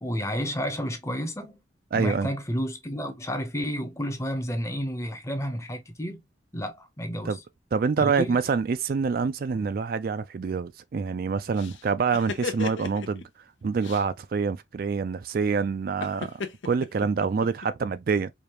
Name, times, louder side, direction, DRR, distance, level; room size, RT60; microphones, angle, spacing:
voice 1, 0.0-1.6 2.0-6.2 6.5-7.3 8.0-8.4, equal, 15° left, 0.7 m, -31 dB
voice 2, 1.9-2.3 7.2-7.4 7.7-13.2 13.6-18.3, right 5 dB, 50° right, 0.3 m, -26 dB
sound 1, 11.6-13.2 13.8-14.0 16.0-17.7, left 5 dB, 90° left, 0.6 m, -35 dB
5.0 x 2.4 x 2.9 m
head